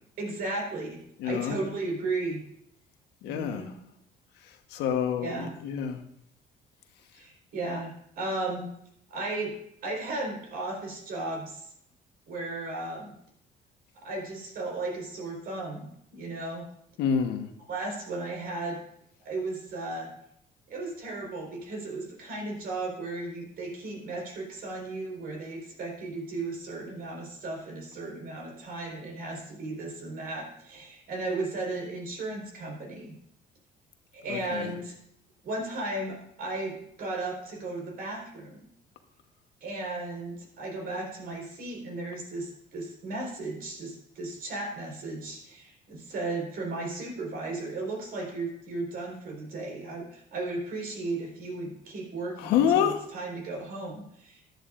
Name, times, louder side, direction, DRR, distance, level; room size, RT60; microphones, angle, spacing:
voice 1, 0.2-2.4 3.2-3.7 5.2-5.5 7.1-8.7 9.1-9.5 9.8-11.7 12.3-13.1 14.0-16.7 17.7-18.8 19.2-20.1 20.7-33.2 34.1-34.9 35.4-38.6 39.6-54.4, right 2 dB, 60° right, -1 dB, 4.4 m, -35 dB
voice 2, 1.2-1.6 3.2-3.7 4.7-6.0 17.0-17.5 34.3-34.7 52.4-53.0, left 8 dB, 90° left, 6 dB, 1.2 m, -27 dB
14.5 x 11.0 x 2.5 m, 0.71 s
cardioid pair, 110°, 17 cm